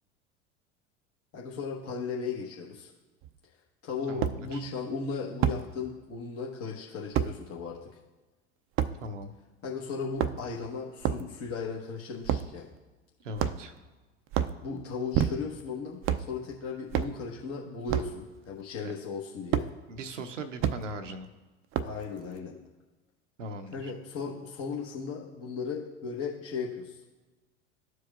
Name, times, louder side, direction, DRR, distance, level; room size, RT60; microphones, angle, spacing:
voice 1, 1.3-2.9 3.8-7.8 9.6-12.7 14.6-19.7 21.8-22.6 23.7-27.0, left 5 dB, 40° left, -3 dB, 1.2 m, -36 dB
sound 1, 3.2-3.3 4.2-4.4 5.4-5.6 7.1-7.3 8.8-8.9 10.0-10.6 11.0-11.3 12.2-12.5 13.4-13.8 14.3-14.6 15.1-15.6 16.0-16.3 16.9-17.2 17.9-18.1 19.5-19.7 20.6-20.8 21.7-22.0, right 10 dB, 35° right, 0.5 m, -28 dB
voice 2, 4.1-4.6 9.0-9.3 13.2-13.7 18.8-18.9 19.9-21.3 23.4-23.9, right 1 dB, 85° right, 7 dB, 0.7 m, -39 dB
14.0 x 4.7 x 2.4 m, 1.2 s
hypercardioid pair, 80°, 36 cm